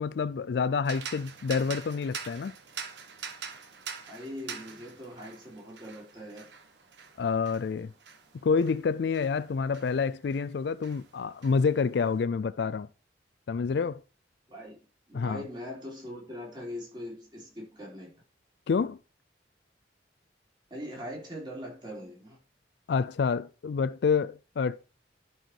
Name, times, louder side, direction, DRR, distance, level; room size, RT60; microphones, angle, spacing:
voice 1, 0.0-2.5 7.2-7.9 8.4-12.9 13.5-14.0 15.1-15.4 18.7-19.0 22.9-24.8, left 5 dB, 65° left, 0.4 m, -28 dB
sound 1, 0.8-10.5 10.8-12.1, right 6 dB, 75° right, 1.3 m, -44 dB
voice 2, 4.1-6.5 14.5-14.8 15.1-18.1 20.7-22.4, equal, 25° right, 3.4 m, -41 dB
11.5 x 4.6 x 4.6 m
head